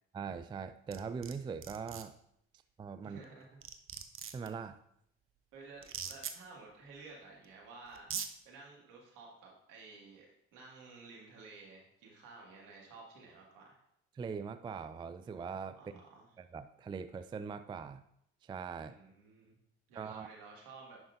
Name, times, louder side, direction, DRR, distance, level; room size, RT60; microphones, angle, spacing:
voice 1, 0.1-2.1 2.8-3.2 4.3-4.8 14.1-15.8 16.4-18.0 18.4-19.0 19.9-20.3, right 5 dB, 15° right, 12 dB, 0.3 m, -41 dB
sound 1, 0.9-1.3 1.6-2.0 3.2-3.3 3.6-4.5 5.8-6.3 7.4-7.5 8.0-8.3, right 8 dB, 40° right, 0.7 m, -40 dB
voice 2, 3.0-3.6 5.5-10.3 10.5-13.8 15.8-16.3 18.9-19.6 19.9-21.0, right 3 dB, 70° right, -2 dB, 2.1 m, -53 dB
10.5 x 5.4 x 2.6 m, 0.75 s
hypercardioid pair, 55°, 33 cm